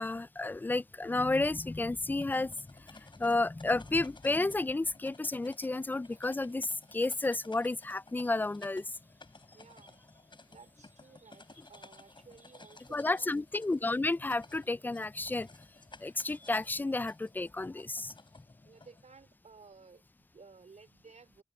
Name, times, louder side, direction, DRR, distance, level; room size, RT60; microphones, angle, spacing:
voice 1, 0.0-2.5 2.9-8.8 12.9-15.5 16.0-18.1, left 2 dB, 15° left, 0.3 m, -31 dB
sound 1, 2.0-19.0, left 3 dB, 40° left, 4.4 m, -57 dB
sound 2, 5.8-16.2, right 1 dB, 15° right, 5.6 m, -70 dB
voice 2, 9.5-10.1 10.5-13.4 18.6-21.4, right 4 dB, 75° right, 3.4 m, -57 dB
wide cardioid pair, 85°, 12 cm